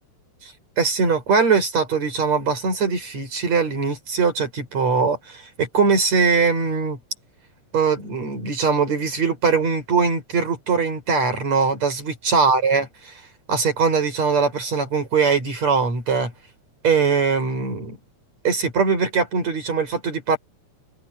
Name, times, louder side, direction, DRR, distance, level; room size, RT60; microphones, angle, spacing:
voice 1, 0.8-7.0 7.7-13.1 13.5-16.3 16.8-18.0 18.4-20.4, right 5 dB, 60° right, 8.0 m, -21 dB
omnidirectional pair, 3.5 m